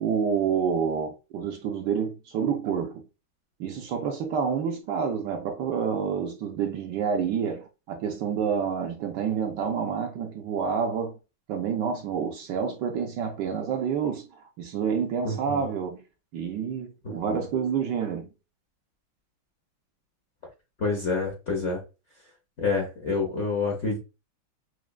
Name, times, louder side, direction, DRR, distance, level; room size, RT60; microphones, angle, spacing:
voice 1, 0.0-3.1 3.6-11.2 11.5-16.0 16.3-18.3, right 7 dB, 70° right, 1.1 m, -28 dB
voice 2, 15.2-15.7 17.0-17.4 20.8-21.8 22.6-24.0, left 4 dB, 50° left, 0.9 m, -28 dB
6.0 x 2.3 x 2.3 m
omnidirectional pair, 2.2 m